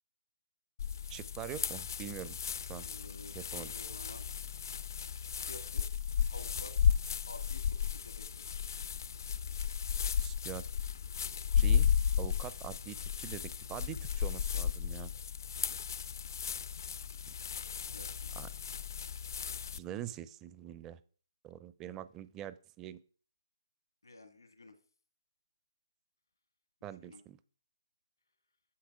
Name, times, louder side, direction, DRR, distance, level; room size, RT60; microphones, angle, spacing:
sound 1, 0.8-19.8, left 7 dB, 60° left, 0.4 m, -34 dB
voice 1, 1.1-2.4 2.7-2.9 3.3-3.7 10.2-10.6 11.6-11.9 12.2-15.1 18.4-18.5 19.7-21.0 21.4-23.0 26.8-27.4, right 11 dB, 15° right, 16 dB, 0.5 m, -44 dB
voice 2, 2.8-4.3 5.2-5.9 6.3-6.9 7.3-8.4 15.5-15.8 17.7-18.3 24.0-24.8 27.1-27.2, left 2 dB, 90° left, 8 dB, 1.9 m, -52 dB
8.5 x 6.9 x 4.8 m, 0.42 s
hypercardioid pair, 145°, 2 cm